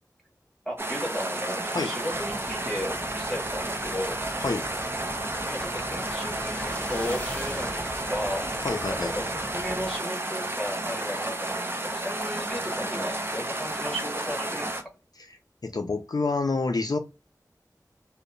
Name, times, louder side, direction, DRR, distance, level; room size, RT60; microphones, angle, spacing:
voice 1, 0.6-4.2 5.4-8.5 9.0-14.8, equal, ahead, 1.5 m, -35 dB
sound 1, 0.8-14.8, right 2 dB, 35° right, 0.5 m, -32 dB
sound 2, 2.1-10.0, left 1 dB, 20° left, 0.8 m, -41 dB
voice 2, 8.6-9.1 15.2-15.4 15.6-17.0, left 3 dB, 65° left, 0.4 m, -28 dB
2.7 x 2.0 x 2.4 m
wide cardioid pair, 55°, 7 cm